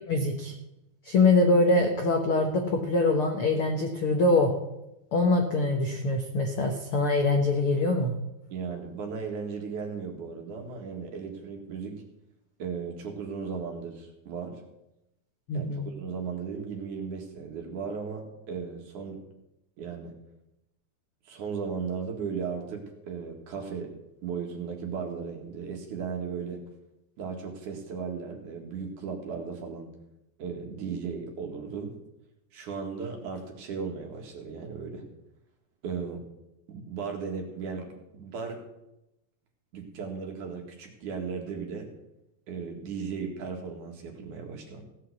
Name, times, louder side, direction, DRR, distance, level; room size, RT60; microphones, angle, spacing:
voice 1, 0.1-0.5 1.0-4.5 5.1-8.1 15.5-15.9, left 2 dB, 85° left, 3 dB, 1.2 m, -24 dB
voice 2, 8.5-12.0 12.6-14.6 15.5-19.2 19.8-20.2 21.3-23.9 24.2-26.6 27.2-29.9 30.4-31.9 32.5-35.0 35.8-36.2 36.7-38.6 39.7-41.9 42.5-44.8, right 5 dB, 55° right, 2 dB, 3.1 m, -36 dB
17.0 x 5.8 x 8.2 m, 0.88 s
omnidirectional pair, 4.5 m